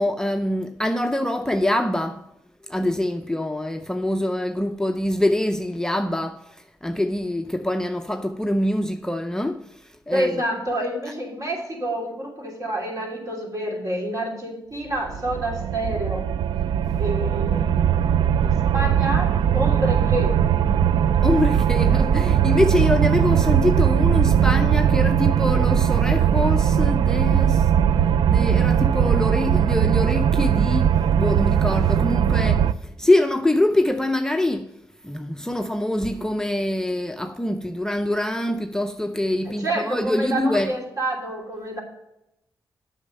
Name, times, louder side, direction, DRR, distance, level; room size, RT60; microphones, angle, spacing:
voice 1, 0.0-2.2 2.6-10.4 21.2-27.7 28.3-34.7 35.0-40.7, left 1 dB, 5° left, 0.5 m, -24 dB
voice 2, 10.1-16.2 17.0-18.1 18.4-20.4 39.4-41.8, right 1 dB, 45° right, 3.3 m, -28 dB
sound 1, 15.0-32.7, right 9 dB, 90° right, 0.3 m, -19 dB
8.5 x 6.3 x 6.6 m
cardioid pair, 95°, 8 cm